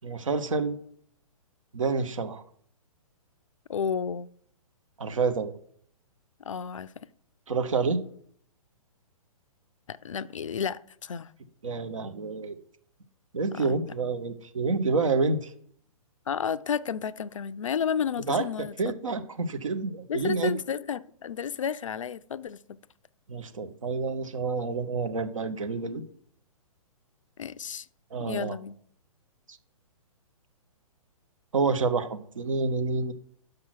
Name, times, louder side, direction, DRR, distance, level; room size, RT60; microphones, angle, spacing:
voice 1, 0.0-0.8 1.7-2.4 5.0-5.5 7.5-8.0 11.6-12.5 13.3-15.5 18.3-18.4 18.8-20.5 23.3-26.0 28.1-28.6 29.5-29.6 31.5-33.1, right 4 dB, 60° right, 9 dB, 0.9 m, -28 dB
voice 2, 3.7-4.3 6.5-6.9 9.9-11.3 13.5-13.8 16.3-19.0 20.1-22.6 27.4-27.9 28.2-28.8, left 7 dB, 60° left, 16 dB, 0.4 m, -32 dB
6.5 x 5.8 x 5.9 m, 0.62 s
figure-of-eight pair, 120°, 18 cm